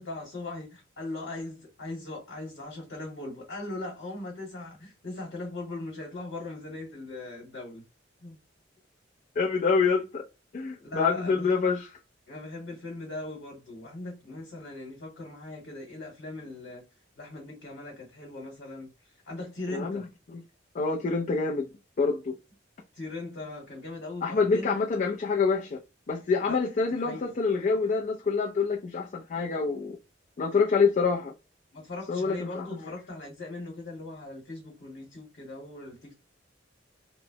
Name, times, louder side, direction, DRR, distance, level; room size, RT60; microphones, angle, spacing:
voice 1, 0.0-7.8 8.2-8.4 10.8-11.5 12.3-16.8 17.2-18.9 19.3-20.0 22.9-24.7 26.4-26.6 27.0-27.3 31.7-36.1, left 2 dB, 75° left, 1.2 m, -39 dB
voice 2, 9.4-10.2 10.5-12.0 19.7-20.0 20.3-20.4 20.7-21.7 22.0-22.3 24.2-25.8 26.1-30.0 30.4-31.3 32.1-32.9, left 4 dB, 45° left, 0.4 m, -26 dB
3.0 x 2.0 x 2.7 m
head